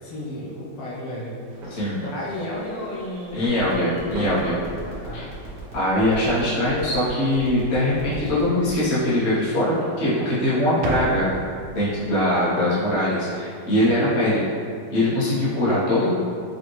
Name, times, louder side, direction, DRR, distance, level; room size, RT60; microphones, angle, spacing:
voice 1, 0.0-1.4 2.0-3.8 4.4-4.6 5.0-5.3, left 1 dB, 90° left, -6 dB, 1.8 m, -33 dB
sound 1, 1.5-7.4, right 1 dB, 65° right, 1.1 m, -39 dB
voice 2, 1.7-2.0 3.3-4.6 5.1-5.3 5.7-11.3 11.7-14.4 14.9-16.1, left 1 dB, 35° left, -10 dB, 1.2 m, -22 dB
sound 2, 3.6-8.8, right 3 dB, 45° right, 0.7 m, -42 dB
sound 3, 7.9-9.4 10.8-12.8 13.1-13.2, right 1 dB, 80° right, 1.4 m, -34 dB
5.3 x 2.6 x 3.0 m, 2.3 s
omnidirectional pair, 2.3 m